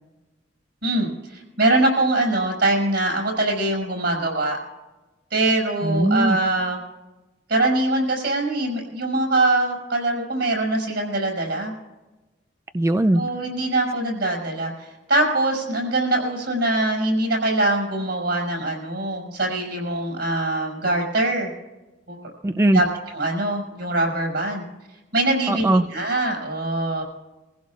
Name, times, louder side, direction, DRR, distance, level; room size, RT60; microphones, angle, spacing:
voice 1, 0.8-4.6 5.3-6.8 7.5-11.7 13.1-21.5 22.1-22.3 22.7-22.9 23.1-24.6 25.1-27.0, right 2 dB, 65° right, 1 dB, 5.6 m, -23 dB
voice 2, 5.8-6.4 12.7-13.2 22.4-22.8 25.5-25.9, right 1 dB, 15° right, 9 dB, 0.3 m, -19 dB
23.5 x 15.5 x 2.4 m, 1.1 s
head